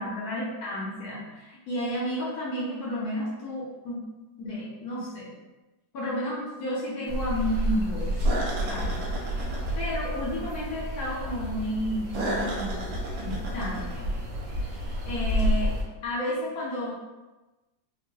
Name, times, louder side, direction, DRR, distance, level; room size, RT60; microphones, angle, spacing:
voice 1, 0.0-4.0 4.4-5.3 5.9-8.3 8.7-9.0 9.8-12.9 13.2-14.1 15.0-15.7 16.0-16.9, equal, 65° left, -5 dB, 1.0 m, -32 dB
sound 1, 7.1-15.8, equal, 75° right, 1.3 m, -29 dB
3.6 x 2.2 x 2.7 m, 1.1 s
omnidirectional pair, 2.0 m